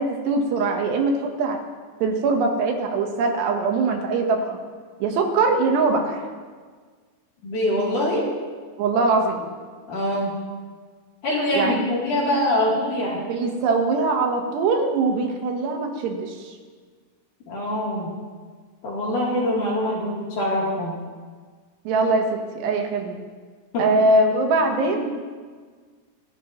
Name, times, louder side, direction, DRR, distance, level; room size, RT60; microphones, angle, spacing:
voice 1, 0.0-1.6 2.0-4.6 5.0-6.3 8.8-9.5 11.5-11.8 13.3-16.5 21.9-23.2 23.8-25.0, right 3 dB, 75° right, 3 dB, 3.4 m, -22 dB
voice 2, 7.4-8.3 9.9-10.4 11.2-13.2 17.5-18.1 18.8-20.9 23.7-23.9 24.8-25.0, left 1 dB, 50° left, -5 dB, 4.5 m, -24 dB
29.0 x 11.5 x 3.2 m, 1.5 s
omnidirectional pair, 5.0 m